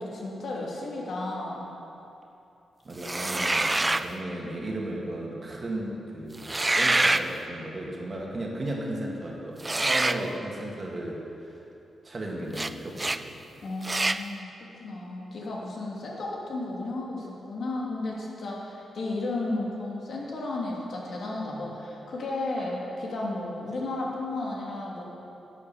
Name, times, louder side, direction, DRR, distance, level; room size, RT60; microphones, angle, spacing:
voice 1, 0.0-1.6 13.6-14.5 14.8-25.0, left 2 dB, 65° left, -3 dB, 2.8 m, -33 dB
voice 2, 2.8-11.6 12.0-13.3, right 1 dB, 35° right, -2 dB, 2.2 m, -35 dB
sound 1, 3.0-4.1 6.4-7.3 9.6-10.2 12.5-12.7 13.0-13.2 13.8-14.2, right 2 dB, 15° right, 0.4 m, -25 dB
11.5 x 9.8 x 7.1 m, 2.9 s
wide cardioid pair, 120°, 0 cm